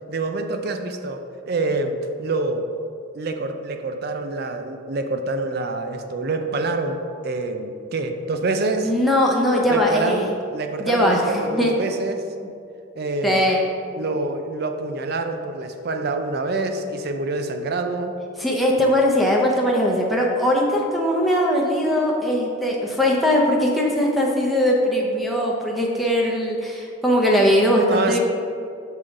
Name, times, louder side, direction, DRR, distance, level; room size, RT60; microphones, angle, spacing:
voice 1, 0.1-2.7 3.1-8.9 9.7-12.3 13.0-13.4 13.9-18.2 27.9-28.2, right 3 dB, 50° right, 6 dB, 0.5 m, -26 dB
voice 2, 8.8-10.2 10.8-11.7 13.2-13.6 18.4-28.2, equal, ahead, -3 dB, 0.7 m, -20 dB
6.2 x 3.7 x 5.2 m, 2.5 s
head